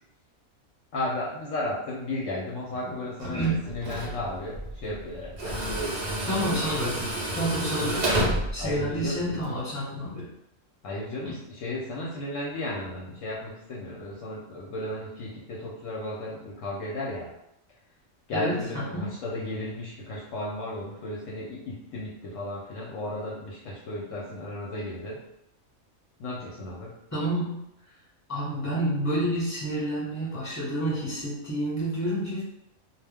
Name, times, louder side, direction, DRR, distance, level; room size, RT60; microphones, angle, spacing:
voice 1, 0.9-6.8 8.6-9.4 10.8-17.3 18.3-25.2 26.2-26.9, left 1 dB, 70° left, -5 dB, 0.9 m, -34 dB
voice 2, 3.2-3.7 6.3-10.3 11.2-11.3 18.3-19.1 27.1-27.6 28.3-32.4, right 1 dB, 15° left, -7 dB, 1.0 m, -29 dB
Tools, 3.2-9.5, right 1 dB, 65° right, 0.4 m, -31 dB
2.3 x 2.1 x 3.4 m, 0.80 s
omnidirectional pair, 1.5 m